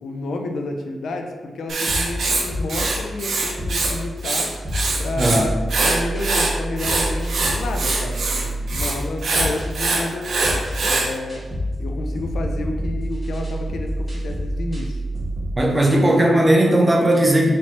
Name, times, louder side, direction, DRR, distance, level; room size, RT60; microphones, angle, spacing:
voice 1, 0.0-4.5 5.0-5.5 5.8-10.4 10.8-11.4 11.8-15.0, left 2 dB, 75° left, 3 dB, 0.4 m, -30 dB
Writing, 1.7-3.9 4.2-5.4 5.7-11.1, right 3 dB, 65° right, 0.6 m, -23 dB
sound 1, 1.9-15.6, equal, 10° left, 1.2 m, -28 dB
voice 2, 5.2-5.5 15.6-17.5, right 1 dB, 15° right, 0 dB, 0.5 m, -17 dB
4.3 x 3.1 x 2.9 m, 1.4 s
wide cardioid pair, 155°, 0 cm